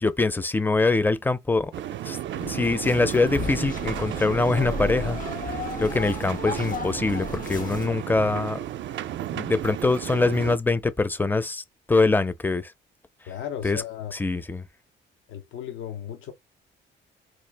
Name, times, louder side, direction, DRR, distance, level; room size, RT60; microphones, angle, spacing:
voice 1, 0.0-1.7 2.0-2.2 2.5-5.2 5.5-8.6 9.3-12.7 13.6-13.8 14.2-14.6, left 3 dB, 10° left, 0.5 m, -24 dB
sound 1, 1.7-10.6, right 12 dB, 70° right, 0.5 m, -33 dB
sound 2, 2.3-7.9, left 4 dB, 40° left, 0.7 m, -34 dB
voice 2, 13.3-14.1 15.3-16.3, left 10 dB, 80° left, 0.7 m, -35 dB
4.5 x 2.4 x 3.3 m
cardioid pair, 90°, 20 cm